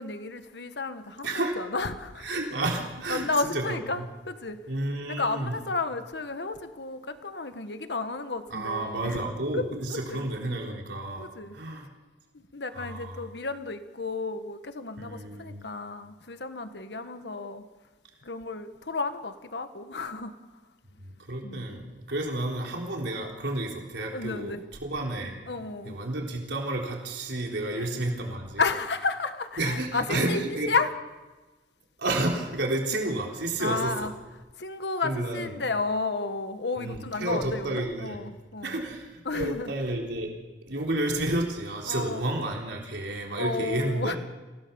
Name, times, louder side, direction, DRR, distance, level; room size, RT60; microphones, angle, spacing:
voice 1, 0.0-2.2 3.1-4.6 5.1-9.3 9.5-9.6 9.9-10.2 11.2-11.5 12.5-17.6 18.2-20.3 21.4-21.6 24.1-24.6 25.5-25.9 27.7-27.9 28.6-30.4 30.7-30.9 33.6-34.1 34.6-38.8 39.2-39.7 41.8-42.2 43.4-44.2, left 3 dB, 75° left, 9 dB, 1.5 m, -32 dB
voice 2, 1.2-1.5 2.2-4.1 4.7-5.5 8.5-11.3 11.5-11.9 12.7-13.2 15.0-15.6 21.0-24.5 24.8-25.4 25.8-28.6 29.6-30.7 32.0-33.9 35.0-35.5 36.8-38.2 38.6-40.3 40.7-44.1, right 2 dB, 90° right, 0 dB, 3.9 m, -31 dB
27.0 x 17.0 x 7.1 m, 1.2 s
head